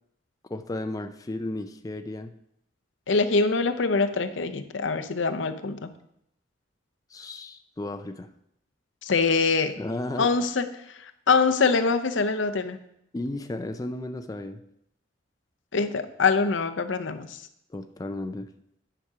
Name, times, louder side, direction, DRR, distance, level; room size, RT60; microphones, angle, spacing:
voice 1, 0.5-2.3 7.1-8.3 9.8-10.3 13.1-14.6 17.7-18.5, left 1 dB, 20° left, 7 dB, 0.4 m, -34 dB
voice 2, 3.1-5.9 9.0-9.7 10.2-10.7 11.0-12.8 15.7-17.4, left 4 dB, 80° left, 8 dB, 0.7 m, -24 dB
10.0 x 5.9 x 4.9 m, 0.76 s
head